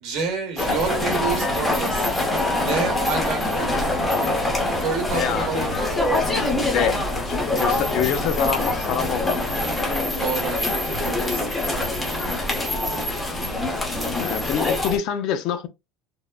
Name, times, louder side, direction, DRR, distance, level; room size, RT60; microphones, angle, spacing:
voice 1, 0.0-2.1 2.6-3.8 4.8-5.8 10.1-11.9, right 5 dB, 45° right, 1.1 m, -29 dB
sound 1, 0.6-15.0, left 2 dB, 10° left, 0.7 m, -24 dB
voice 2, 5.1-5.7 6.1-9.4 13.4-13.6 14.1-15.7, left 8 dB, 40° left, 0.4 m, -26 dB
3.5 x 2.0 x 2.3 m
cardioid pair, 175°, 0 cm